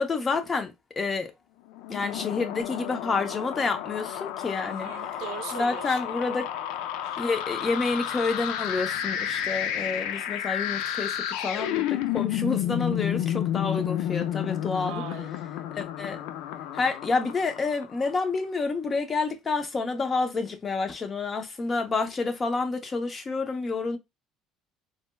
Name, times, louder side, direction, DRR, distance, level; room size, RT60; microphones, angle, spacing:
voice 1, 0.0-1.3 1.9-4.9 5.5-6.5 7.2-14.9 15.7-16.2 16.7-24.0, left 4 dB, 30° left, 0.8 m, -29 dB
sound 1, 1.7-18.1, left 10 dB, 80° left, 0.4 m, -31 dB
voice 2, 4.6-6.1 14.8-15.4, right 9 dB, 75° right, 0.6 m, -40 dB
4.2 x 2.2 x 2.2 m
supercardioid pair, 95°, 0 cm